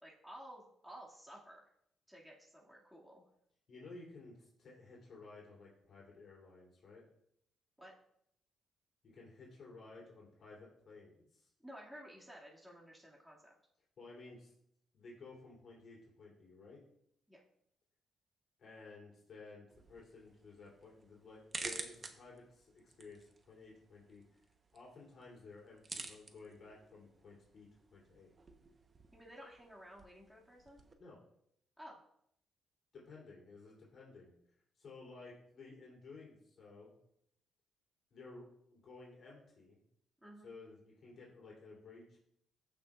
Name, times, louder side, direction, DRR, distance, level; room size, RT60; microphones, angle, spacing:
voice 1, 0.0-1.7 2.1-3.2 7.8-7.9 11.6-13.5 17.3-17.4 29.1-30.8 31.8-32.0 40.2-40.5, equal, ahead, -5 dB, 2.1 m, -54 dB
voice 2, 3.7-7.0 9.0-11.5 14.0-14.5 14.9-16.8 18.6-24.2 24.7-28.3 31.0-31.2 32.9-34.3 34.8-36.9 38.1-38.4 38.7-39.8 40.4-42.2, left 3 dB, 55° left, -4 dB, 3.1 m, -55 dB
sound 1, 19.7-30.9, right 3 dB, 35° right, 1.0 m, -51 dB
15.0 x 5.9 x 2.4 m, 0.72 s
cardioid pair, 90°, 0 cm